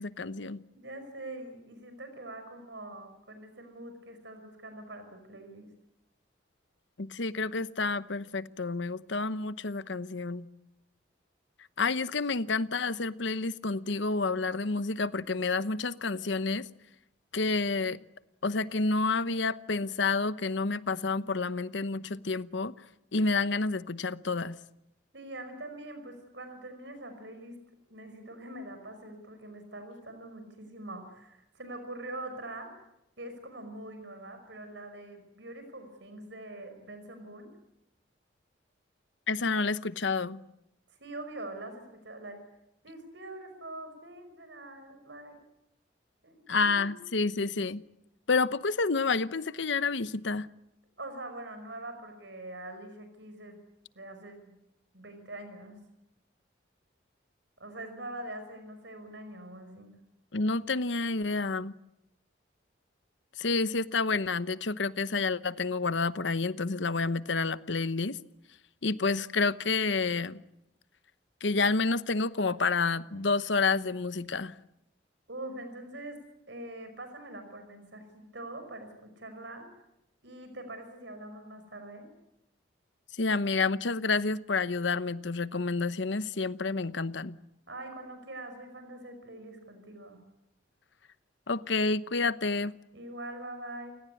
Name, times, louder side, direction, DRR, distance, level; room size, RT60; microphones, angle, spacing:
voice 1, 0.0-0.6 7.0-10.5 11.8-16.7 17.3-18.0 18.4-22.7 23.1-24.6 39.3-40.4 46.5-47.8 48.3-50.5 60.3-61.7 63.4-68.2 68.8-70.4 71.4-74.5 83.2-87.4 91.5-92.8, left 3 dB, 75° left, 0.9 m, -29 dB
voice 2, 0.7-5.7 25.1-27.6 27.9-32.7 33.2-37.5 40.9-42.4 42.8-45.4 46.2-47.0 51.0-53.6 53.9-54.6 54.9-55.8 57.6-59.9 75.3-76.2 76.5-79.7 80.2-82.1 87.7-90.2 92.9-93.9, right 1 dB, 70° right, 5.4 m, -44 dB
29.0 x 18.0 x 9.8 m
head